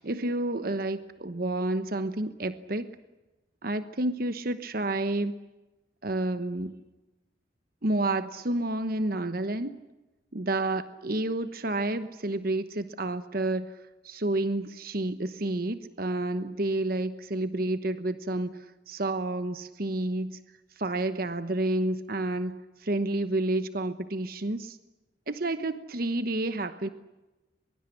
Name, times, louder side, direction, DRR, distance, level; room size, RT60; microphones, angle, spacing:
voice 1, 0.0-2.9 3.6-5.3 6.0-6.8 7.8-9.8 10.3-13.7 14.0-18.6 18.9-20.4 20.8-24.8 25.3-26.9, right 2 dB, 50° right, 12 dB, 1.1 m, -30 dB
23.0 x 23.0 x 10.0 m, 1.0 s
head